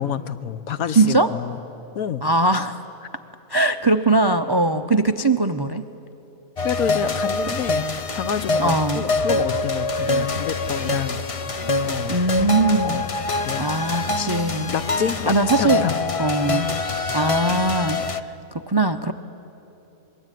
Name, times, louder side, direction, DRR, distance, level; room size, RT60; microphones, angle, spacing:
voice 1, 0.0-1.6 1.9-2.2 6.6-7.9 8.1-11.2 11.8-12.2 12.8-13.1 13.4-13.7 14.7-16.0, left 8 dB, 80° left, 12 dB, 1.3 m, -28 dB
voice 2, 0.9-1.3 2.2-2.8 3.5-5.8 8.6-9.1 12.1-13.0 13.6-14.8 15.2-15.8 16.2-16.7 17.1-18.0 18.7-19.1, right 2 dB, 40° right, 9 dB, 0.3 m, -20 dB
sound 1, 6.6-18.2, left 3 dB, 35° left, 0.5 m, -25 dB
26.0 x 21.5 x 9.2 m, 3.0 s
omnidirectional pair, 1.5 m